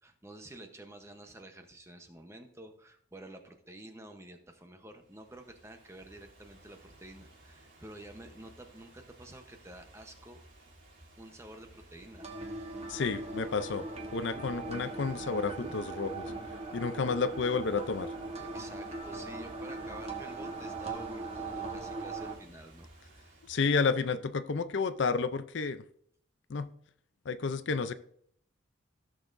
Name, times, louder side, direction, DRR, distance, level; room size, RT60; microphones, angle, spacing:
voice 1, 0.0-10.4 11.2-12.3 18.4-23.4, right 1 dB, 15° right, 5 dB, 0.9 m, -50 dB
Ocean / Fireworks, 4.9-24.2, right 1 dB, 70° right, 3.0 m, -55 dB
sound 1, 12.2-22.4, right 3 dB, 30° right, 1.3 m, -40 dB
voice 2, 12.9-13.8 14.1-16.3 16.7-18.1 23.5-25.8 26.5-26.7 27.3-27.9, left 4 dB, 60° left, 12 dB, 0.5 m, -31 dB
15.5 x 6.5 x 2.6 m, 0.63 s
head